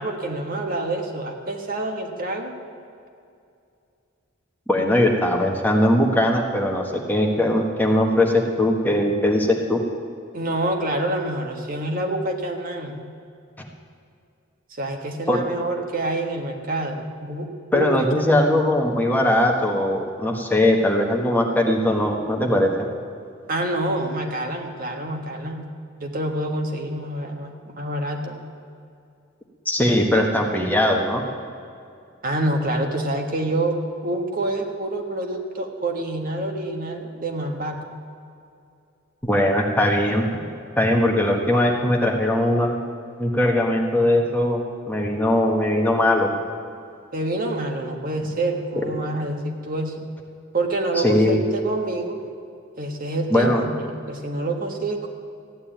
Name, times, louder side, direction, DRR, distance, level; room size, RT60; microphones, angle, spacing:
voice 1, 0.0-2.6 10.3-13.0 14.8-17.9 18.2-18.6 23.5-25.7 26.0-28.4 32.2-33.8 34.0-37.8 47.1-50.1 50.5-52.2 52.8-55.1, right 1 dB, 45° right, 3 dB, 1.5 m, -27 dB
voice 2, 4.7-9.8 15.3-15.4 17.7-22.7 29.6-31.2 39.2-40.3 40.8-42.7 43.2-46.3 51.0-51.4 53.3-53.6, left 1 dB, 10° left, 1 dB, 1.4 m, -20 dB
15.0 x 9.6 x 9.1 m, 2.5 s
head